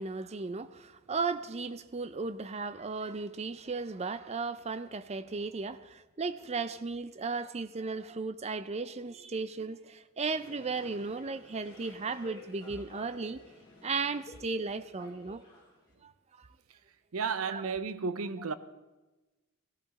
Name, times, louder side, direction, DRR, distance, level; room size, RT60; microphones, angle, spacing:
voice 1, 0.0-13.4 13.8-15.4 16.0-16.1 16.4-16.5 17.5-17.7, right 4 dB, 30° right, 0.5 m, -35 dB
sound 1, 10.2-15.9, left 1 dB, 20° left, 3.5 m, -53 dB
voice 2, 17.1-18.5, right 5 dB, 70° right, 0.7 m, -33 dB
16.0 x 14.0 x 4.1 m
head